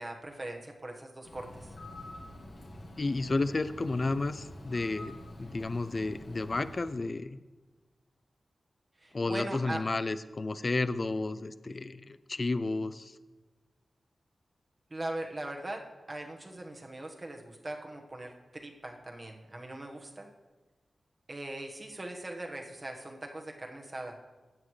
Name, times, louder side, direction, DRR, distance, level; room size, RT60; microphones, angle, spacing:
voice 1, 0.0-1.7 9.0-9.8 14.9-20.3 21.3-24.1, right 1 dB, 30° right, 2 dB, 1.3 m, -40 dB
Bird, 1.2-7.1, left 1 dB, 60° left, 2.3 m, -47 dB
voice 2, 3.0-7.4 9.1-13.1, left 3 dB, 35° left, 14 dB, 0.4 m, -32 dB
15.5 x 9.6 x 3.2 m, 1.3 s
wide cardioid pair, 135°, 0 cm